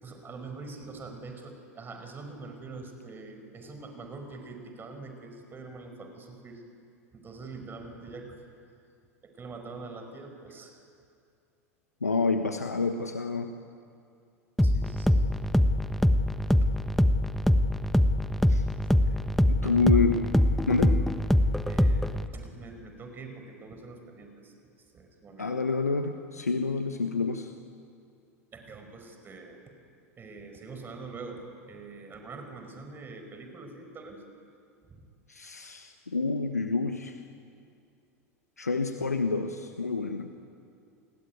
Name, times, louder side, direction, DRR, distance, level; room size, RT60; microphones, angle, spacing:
voice 1, 0.0-6.6 7.1-8.4 9.2-10.8 14.6-15.2 16.6-16.7 19.0-19.3 19.6-20.0 21.7-24.5 24.9-25.6 28.5-29.6 30.2-34.2 34.8-35.0, right 3 dB, 25° right, 5 dB, 5.2 m, -44 dB
voice 2, 12.0-13.5 18.5-18.6 19.5-20.2 20.7-21.0 25.4-27.5 35.3-37.2 38.6-40.3, left 4 dB, 90° left, 7 dB, 1.3 m, -28 dB
sound 1, 14.6-22.3, left 1 dB, ahead, 1.2 m, -24 dB
29.5 x 21.0 x 9.7 m, 2.4 s
figure-of-eight pair, 85°, 8 cm